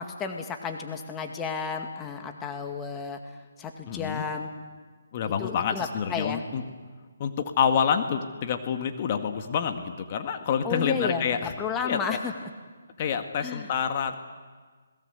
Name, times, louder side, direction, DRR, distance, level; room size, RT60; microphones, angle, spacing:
voice 1, 0.0-3.2 3.6-4.5 5.4-6.4 10.6-11.3 11.6-12.3 13.4-13.7, left 6 dB, 15° left, 4 dB, 2.1 m, -32 dB
voice 2, 3.9-4.2 5.1-6.6 7.2-11.5 11.8-12.2 13.0-14.2, left 7 dB, 35° left, 6 dB, 1.9 m, -27 dB
28.0 x 20.5 x 8.2 m, 1.4 s
figure-of-eight pair, 150°, 0 cm